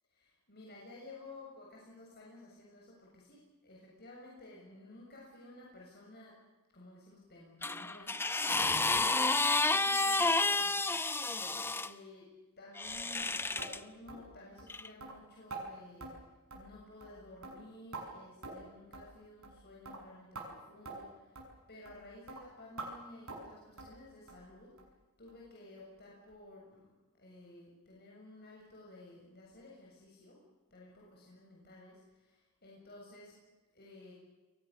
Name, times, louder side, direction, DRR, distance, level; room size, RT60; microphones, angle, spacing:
voice 1, 0.1-6.4 6.7-11.1 11.8-12.3 12.6-16.1 16.5-21.4 21.7-24.7 25.2-26.9 27.2-30.4 30.7-33.3 33.7-34.1, left 2 dB, 45° left, -3 dB, 7.2 m, -54 dB
sound 1, 7.6-11.9 12.8-13.8 14.7-14.9, left 3 dB, 10° left, 0.7 m, -30 dB
sound 2, 13.6-13.7 14.1-14.3 14.6-14.7 15.0-15.1 15.5-15.6 16.0-16.1 16.5-16.7 17.0-17.2 17.4-18.0 18.4-18.7 18.9-19.1 19.4-19.6 19.9-20.0 20.4-20.5 20.9-21.0 21.4-21.5 21.9-22.0 22.3-22.4 22.8-22.9 23.3-23.5 23.8-24.0 24.3-24.4 24.8-24.9 25.3-25.4 25.8-25.9, right 3 dB, 65° right, 7.1 m, -45 dB
29.0 x 23.0 x 7.0 m, 1.2 s
head